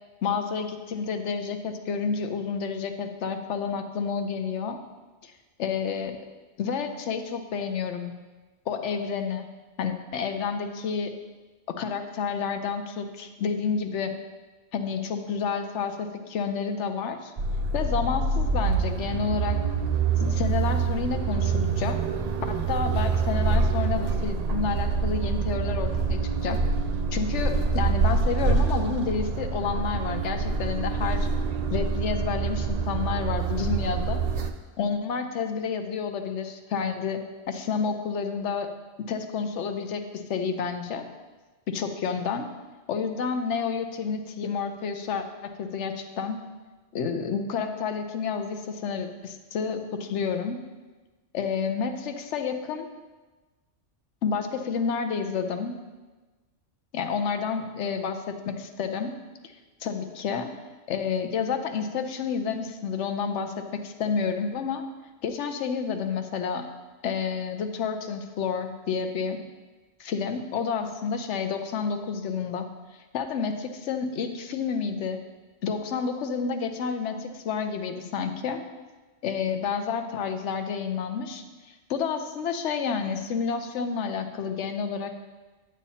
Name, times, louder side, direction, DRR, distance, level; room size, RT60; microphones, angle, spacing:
voice 1, 0.2-4.8 5.2-5.3 5.6-6.2 6.6-8.1 8.7-9.5 9.8-11.1 11.8-14.1 14.7-17.3 17.7-19.6 20.2-22.0 22.5-26.6 27.1-31.3 31.7-34.2 34.8-37.2 37.5-38.7 39.1-41.1 41.7-42.5 42.9-46.4 46.9-50.6 51.3-52.9 54.2-55.7 56.9-59.1 59.8-60.5 60.9-64.8 65.2-66.7 67.0-69.4 70.0-72.7 72.9-75.2 75.6-78.6 79.2-85.1, left 6 dB, 70° left, 7 dB, 1.0 m, -30 dB
sound 1, 17.4-34.5, right 4 dB, 55° right, 0.4 m, -26 dB
10.0 x 8.5 x 2.8 m, 1.3 s
omnidirectional pair, 1.3 m